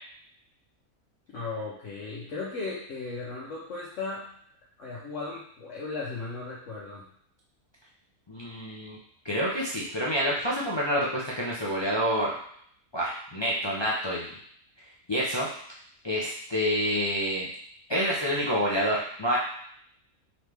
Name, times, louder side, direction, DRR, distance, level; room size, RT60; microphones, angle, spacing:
voice 1, 1.3-4.3 4.8-7.1, left 3 dB, 65° left, -6 dB, 1.1 m, -36 dB
voice 2, 8.3-9.0 9.2-12.4 12.9-14.3 15.1-15.5 16.0-17.5 17.9-19.4, equal, 45° left, -5 dB, 0.3 m, -28 dB
3.9 x 3.1 x 3.4 m, 0.65 s
omnidirectional pair, 1.4 m